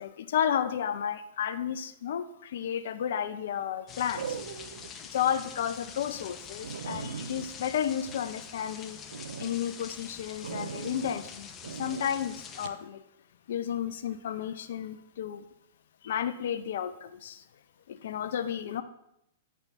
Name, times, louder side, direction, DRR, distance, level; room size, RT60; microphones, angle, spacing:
voice 1, 0.0-4.4 5.1-9.0 9.4-11.5 11.8-13.0 13.5-15.4 16.0-17.4 17.9-18.8, left 9 dB, 65° left, 0.4 m, -32 dB
sound 1, 2.5-3.0 4.1-4.9 5.4-5.5 6.0-6.1 6.3-6.4 6.6-8.7 9.1-9.5 10.4-11.2 11.6-12.1 12.6-12.8, right 6 dB, 75° right, 0.4 m, -39 dB
sound 2, 3.9-12.7, left 7 dB, 25° left, 0.6 m, -45 dB
8.0 x 4.2 x 3.5 m
hypercardioid pair, 110°, 0 cm